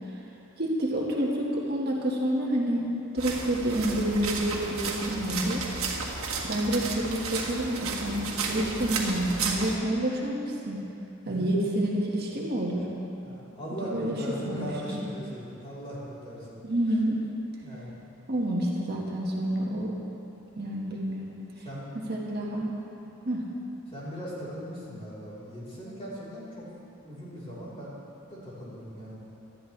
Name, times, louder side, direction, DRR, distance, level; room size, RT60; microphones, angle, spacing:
voice 1, 0.6-5.6 6.4-10.8 11.3-12.9 13.8-14.2 14.5-14.7 14.9-15.0 16.6-17.2 18.3-19.9 20.6-21.4 22.1-22.7 23.2-23.5, right 1 dB, 50° right, -3 dB, 1.7 m, -28 dB
sound 1, 3.2-9.8, right 4 dB, 80° right, 1.7 m, -33 dB
voice 2, 13.2-16.6 17.6-17.9 21.6-21.9 23.9-26.7 27.0-28.0 28.3-29.2, equal, 30° left, -9 dB, 3.8 m, -39 dB
19.0 x 12.5 x 3.3 m, 2.8 s
head